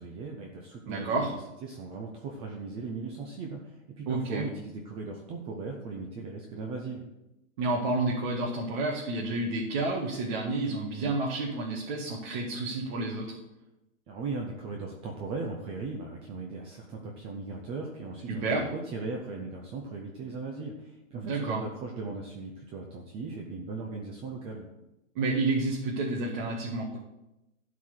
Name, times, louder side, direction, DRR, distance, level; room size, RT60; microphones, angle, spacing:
voice 1, 0.0-1.3 1.6-7.0 14.1-24.7, right 3 dB, 15° right, 1 dB, 0.6 m, -38 dB
voice 2, 0.9-1.3 4.1-4.4 7.6-13.4 18.3-18.6 21.1-21.6 25.2-27.0, right 2 dB, 35° right, -4 dB, 1.9 m, -30 dB
12.0 x 4.7 x 7.9 m, 0.94 s
hypercardioid pair, 155°, 41 cm